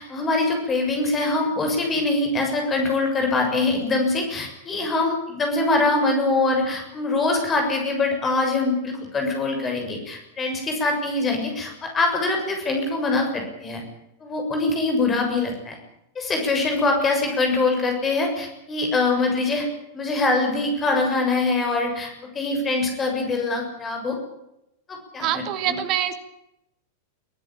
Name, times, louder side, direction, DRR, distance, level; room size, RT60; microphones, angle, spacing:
voice 1, 0.0-13.8 14.2-15.8 16.2-19.7 19.9-24.2 24.9-25.8, left 3 dB, 20° left, 3 dB, 7.0 m, -23 dB
voice 2, 25.2-26.2, right 11 dB, 40° right, 10 dB, 2.3 m, -25 dB
23.5 x 16.0 x 9.0 m, 0.85 s
figure-of-eight pair, 90°, 0 cm